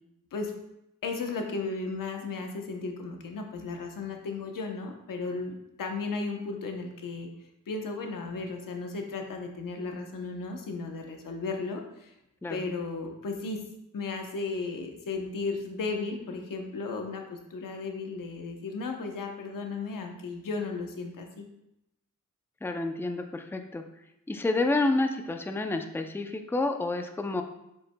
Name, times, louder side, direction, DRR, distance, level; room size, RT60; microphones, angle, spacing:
voice 1, 1.0-7.3 7.7-12.1 12.5-13.7 13.9-21.5, left 3 dB, 90° left, 3 dB, 1.0 m, -35 dB
voice 2, 22.6-23.8 24.3-27.4, left 2 dB, 5° left, 6 dB, 0.5 m, -29 dB
7.3 x 6.7 x 2.3 m, 0.85 s
wide cardioid pair, 95°, 32 cm